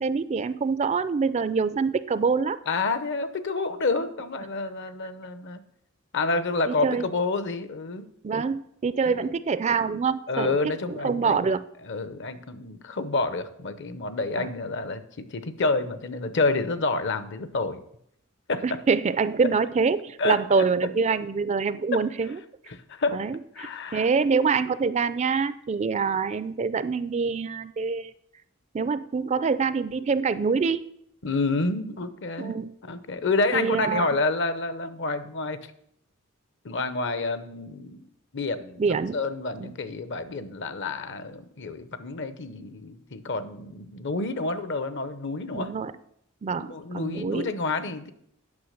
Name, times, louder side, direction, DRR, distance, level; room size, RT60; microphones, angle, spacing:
voice 1, 0.0-2.6 6.7-7.1 8.2-10.6 10.9-11.6 14.4-14.5 18.6-22.4 23.1-28.1 28.7-30.9 32.4-32.8 33.5-34.1 38.8-39.2 39.6-39.7 45.5-45.9 46.4-47.5, right 5 dB, 30° right, 14 dB, 0.4 m, -25 dB
voice 2, 2.7-5.6 6.1-8.1 9.0-9.3 10.3-11.4 11.8-17.8 18.5-18.8 20.2-20.7 21.9-22.1 22.7-23.2 23.5-24.1 31.2-35.6 36.6-38.1 38.3-45.7 46.6-48.1, left 3 dB, 55° left, 12 dB, 0.8 m, -29 dB
9.6 x 6.0 x 6.5 m, 0.71 s
head